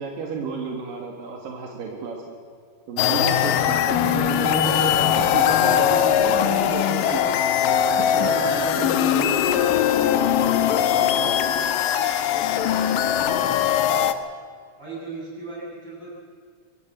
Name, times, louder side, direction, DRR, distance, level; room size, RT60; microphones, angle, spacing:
voice 1, 0.0-2.4 2.9-7.2 7.5-7.6 8.0-11.4, right 5 dB, 80° right, 1 dB, 3.6 m, -32 dB
sound 1, 3.0-14.1, left 9 dB, 90° left, 2.6 m, -21 dB
voice 2, 12.2-12.8 14.8-16.1, right 3 dB, 30° right, -5 dB, 8.3 m, -38 dB
24.0 x 15.0 x 7.6 m, 2.1 s
omnidirectional pair, 3.9 m